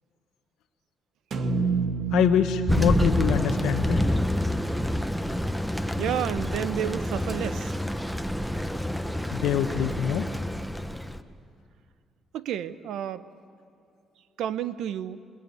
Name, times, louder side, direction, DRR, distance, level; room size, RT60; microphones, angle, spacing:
sound 1, 1.3-5.5, right 5 dB, 60° right, 1.9 m, -31 dB
voice 1, 2.1-4.1 9.3-10.3, left 9 dB, 90° left, 4 dB, 1.1 m, -25 dB
Thunder, 2.7-11.2, equal, ahead, 1.1 m, -27 dB
voice 2, 6.0-7.7 12.3-13.2 14.4-15.2, right 10 dB, 80° right, 13 dB, 0.9 m, -30 dB
28.0 x 20.5 x 9.7 m, 2.4 s
cardioid pair, 90°, 0 cm